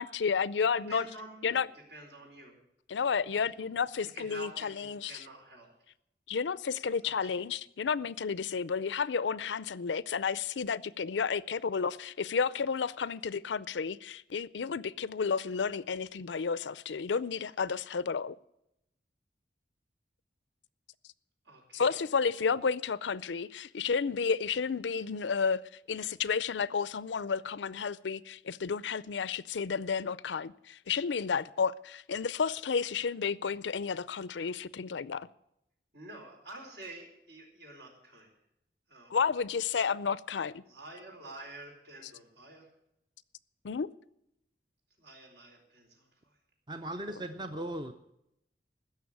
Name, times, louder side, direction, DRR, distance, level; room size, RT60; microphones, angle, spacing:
voice 1, 0.0-1.0 1.4-1.6 2.9-4.5 4.9-5.1 6.3-18.3 21.7-25.6 25.9-35.3 39.1-40.6 43.6-43.9, left 6 dB, 90° left, 0.5 m, -31 dB
voice 2, 0.9-2.6 3.3-3.7 4.0-5.7 7.0-7.4 21.4-22.1 35.9-38.3 38.9-39.1 40.6-42.7 45.0-46.4, right 1 dB, 70° right, 4.4 m, -49 dB
voice 3, 46.7-47.9, right 1 dB, 25° right, 0.6 m, -37 dB
16.0 x 6.7 x 9.3 m
head